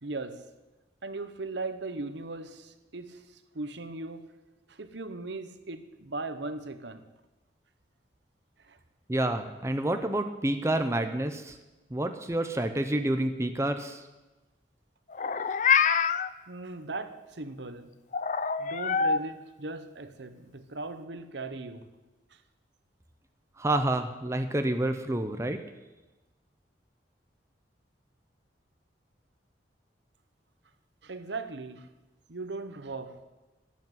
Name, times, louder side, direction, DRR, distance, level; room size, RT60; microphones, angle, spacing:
voice 1, 0.0-0.5 1.0-4.3 4.7-7.1 8.6-8.8 16.5-17.9 18.6-21.9 22.3-22.4 31.0-31.9 32.3-33.2, right 3 dB, 70° right, 1.0 m, -38 dB
voice 2, 9.1-11.5 11.9-14.0 23.6-25.6, right 1 dB, 15° right, 0.7 m, -28 dB
Meow, 15.1-16.3 18.1-19.2, left 6 dB, 40° left, 0.5 m, -25 dB
12.5 x 8.5 x 9.4 m
head